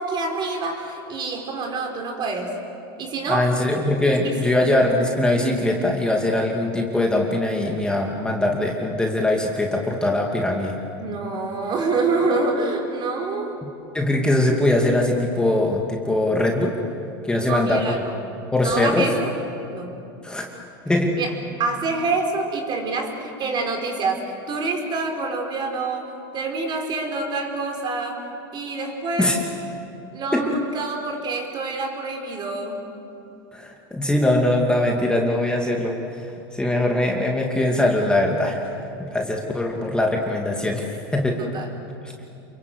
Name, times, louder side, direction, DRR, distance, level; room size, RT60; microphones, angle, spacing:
voice 1, 0.0-2.6 3.0-3.5 4.4-4.5 11.0-13.6 17.3-18.2 18.6-19.3 19.7-20.0 21.2-21.3 21.6-28.2 28.5-29.3 30.1-32.8 41.4-41.7, right 3 dB, 40° right, 3 dB, 5.1 m, -26 dB
voice 2, 3.3-10.8 13.9-16.8 17.2-18.0 18.5-19.1 20.2-20.5 20.9-21.2 29.2-29.4 30.3-30.5 33.5-41.4 42.0-42.1, left 1 dB, 5° left, 0 dB, 2.5 m, -22 dB
29.0 x 23.0 x 8.1 m, 2.7 s
supercardioid pair, 115°, 12 cm